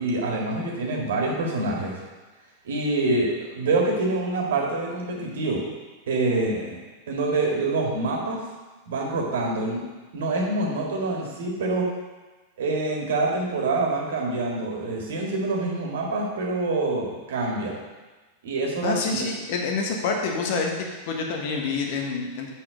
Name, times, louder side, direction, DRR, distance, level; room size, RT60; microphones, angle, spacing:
voice 1, 0.0-2.0 2.6-5.7 6.1-6.8 7.1-8.4 8.9-9.8 10.1-11.9 12.6-17.8 18.4-19.3, right 2 dB, 60° right, -1 dB, 1.8 m, -26 dB
voice 2, 18.8-20.7 21.1-22.5, left 4 dB, 50° left, 1 dB, 1.2 m, -27 dB
6.8 x 5.7 x 5.0 m, 1.2 s
figure-of-eight pair, 90°, 0 cm